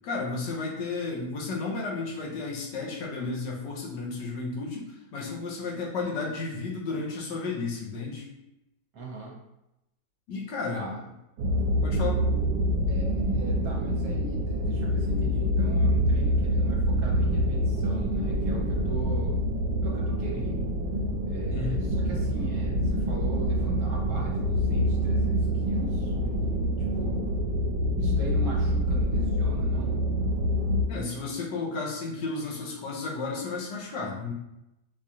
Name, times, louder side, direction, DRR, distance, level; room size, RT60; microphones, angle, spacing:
voice 1, 0.0-8.3 10.3-10.9 11.8-12.2 21.5-21.9 30.9-34.3, left 3 dB, 85° left, -2 dB, 1.5 m, -33 dB
voice 2, 8.9-9.4 10.7-11.0 12.9-19.4 19.8-20.7 21.2-27.3 28.0-30.0, right 1 dB, 60° right, -3 dB, 1.2 m, -40 dB
sound 1, 11.4-30.8, equal, 85° right, 1.2 m, -26 dB
4.6 x 2.4 x 2.7 m, 0.89 s
omnidirectional pair, 1.8 m